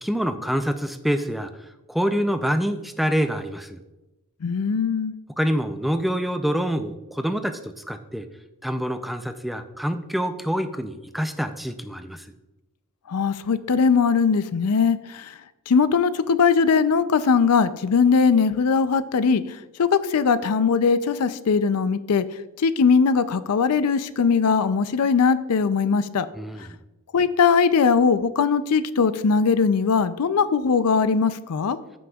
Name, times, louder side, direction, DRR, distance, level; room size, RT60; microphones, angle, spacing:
voice 1, 0.0-1.5 1.9-3.8 5.4-8.3 8.6-12.3 26.3-26.7, equal, ahead, 8 dB, 0.4 m, -26 dB
voice 2, 4.4-5.1 13.1-15.3 15.7-19.4 19.8-22.3 22.6-26.3 27.1-31.8, left 5 dB, 80° left, 14 dB, 0.5 m, -20 dB
14.0 x 6.1 x 2.3 m, 1.0 s
head